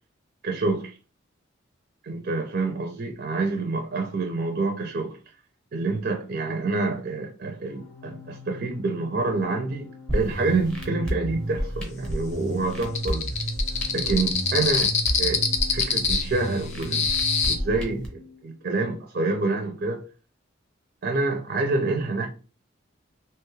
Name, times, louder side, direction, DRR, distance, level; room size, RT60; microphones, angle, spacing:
voice 1, 0.4-0.9 2.0-5.2 5.7-13.3 13.9-14.9 15.2-15.5 15.7-17.1 17.4-20.0 21.0-22.3, right 3 dB, 45° right, 0.4 m, -27 dB
Organ, 7.7-18.5, left 5 dB, 80° left, 0.7 m, -45 dB
sound 1, 10.1-18.1, right 1 dB, 5° left, 0.7 m, -31 dB
sound 2, 13.0-17.6, left 5 dB, 35° left, 0.4 m, -24 dB
2.9 x 2.3 x 3.1 m
head